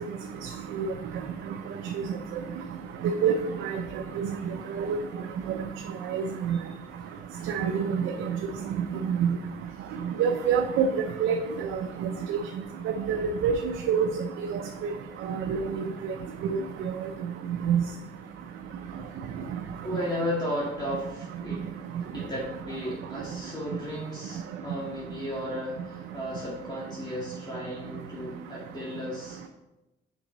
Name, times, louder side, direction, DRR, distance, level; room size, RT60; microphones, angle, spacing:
voice 1, 3.0-3.3 3.6-3.7 4.2-4.3 4.9-5.0 6.1-6.6 7.5-8.0 9.1-9.3 10.2-10.9 11.2-11.3 12.3-12.4 13.1-13.5 13.9-14.1 14.5-14.6 15.3-16.1 16.5-16.6 17.7-17.8, right 8 dB, 85° right, 4 dB, 0.6 m, -25 dB
voice 2, 19.8-21.7 22.1-29.5, equal, 20° left, -6 dB, 2.1 m, -34 dB
5.9 x 5.5 x 3.9 m, 0.98 s
cardioid pair, 90°, 20 cm